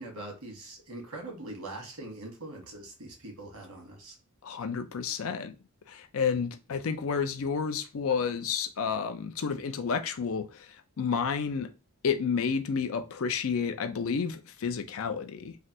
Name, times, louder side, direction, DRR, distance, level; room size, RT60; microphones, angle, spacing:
voice 1, 0.0-4.1, right 2 dB, 90° right, 1.3 m, -42 dB
voice 2, 4.4-5.5 5.9-10.7 11.0-11.7 12.0-15.6, left 6 dB, 70° left, 0.4 m, -30 dB
3.2 x 2.4 x 2.7 m
head